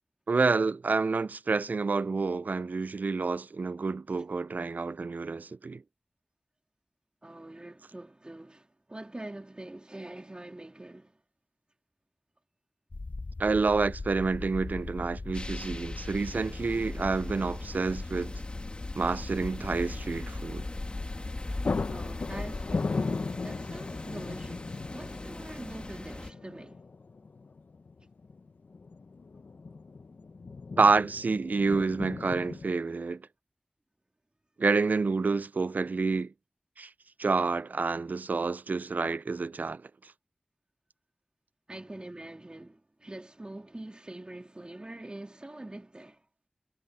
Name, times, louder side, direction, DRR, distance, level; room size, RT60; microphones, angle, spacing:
voice 1, 0.3-5.8 13.4-18.4 19.0-20.7 30.8-33.2 34.6-36.3 36.8-36.9 37.2-39.9, right 4 dB, 70° right, 0.3 m, -28 dB
voice 2, 7.2-11.2 21.9-26.9 41.7-46.3, right 1 dB, 35° right, 3.5 m, -44 dB
sound 1, 12.9-22.8, left 3 dB, 55° left, 0.7 m, -39 dB
sound 2, 15.3-26.3, left 2 dB, 35° left, 2.2 m, -42 dB
sound 3, 20.9-21.1 21.3-32.7, left 4 dB, 85° left, 0.8 m, -37 dB
wide cardioid pair, 50°, 3 cm